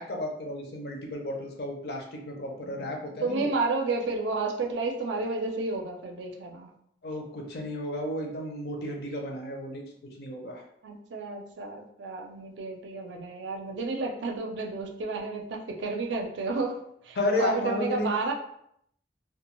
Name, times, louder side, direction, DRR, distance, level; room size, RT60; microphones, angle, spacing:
voice 1, 0.0-3.5 7.0-9.8 10.2-10.6 17.2-18.1, left 1 dB, 60° left, 1 dB, 0.5 m, -32 dB
voice 2, 3.2-6.7 10.8-18.3, right 3 dB, 80° right, 2 dB, 0.4 m, -31 dB
2.3 x 2.2 x 3.0 m, 0.72 s
head